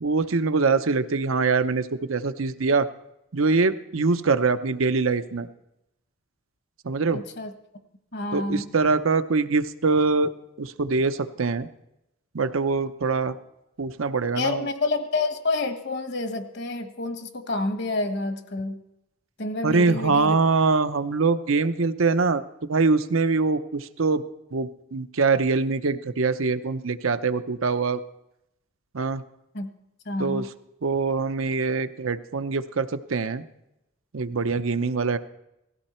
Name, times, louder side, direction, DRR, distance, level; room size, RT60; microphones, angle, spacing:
voice 1, 0.0-2.9 3.3-5.5 6.8-7.2 8.3-10.3 10.6-11.7 12.3-13.3 13.8-14.7 19.6-22.4 22.7-24.2 24.5-28.0 28.9-29.2 30.2-30.5 30.8-33.4 34.1-35.2, right 4 dB, 75° right, 11 dB, 0.7 m, -23 dB
voice 2, 7.1-7.5 8.1-8.7 14.3-18.8 19.4-20.3 29.5-29.7 30.0-30.5, left 3 dB, 55° left, 8 dB, 1.3 m, -28 dB
18.0 x 15.0 x 4.4 m, 0.87 s
head